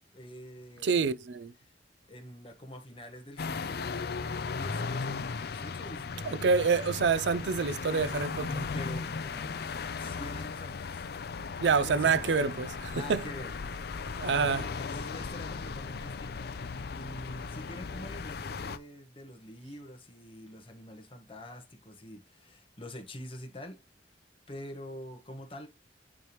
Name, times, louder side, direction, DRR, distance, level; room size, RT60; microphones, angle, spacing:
voice 1, 0.1-1.0 1.6-1.7 2.1-6.4 8.5-9.6 10.0-11.0 11.8-12.3 12.9-14.2 14.8-16.5 16.9-23.8 24.5-25.7, left 1 dB, 30° left, 1.3 m, -46 dB
voice 2, 0.8-1.5 6.2-8.6 11.6-13.2 14.2-14.7, right 5 dB, 75° right, 0.5 m, -27 dB
sound 1, 3.4-18.8, left 4 dB, 60° left, 0.5 m, -37 dB
9.4 x 3.4 x 3.0 m
head